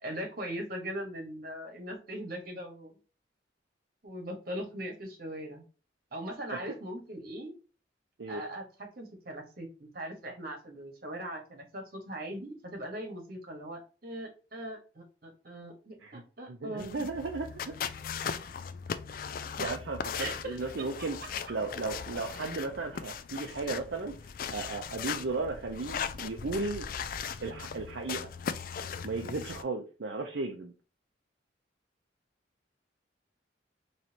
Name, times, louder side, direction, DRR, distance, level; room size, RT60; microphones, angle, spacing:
voice 1, 0.0-2.9 4.0-5.6 6.1-7.5 8.3-17.1 20.1-20.6 21.2-21.3 23.5-23.6, right 1 dB, 50° right, 3 dB, 1.5 m, -40 dB
voice 2, 16.5-17.8 19.1-19.2 19.6-24.1 24.5-26.9 27.4-28.3 29.0-30.7, right 3 dB, 70° right, 2 dB, 0.6 m, -35 dB
sound 1, 16.8-29.6, left 7 dB, 50° left, 0.3 m, -38 dB
4.2 x 3.2 x 2.9 m, 0.34 s
head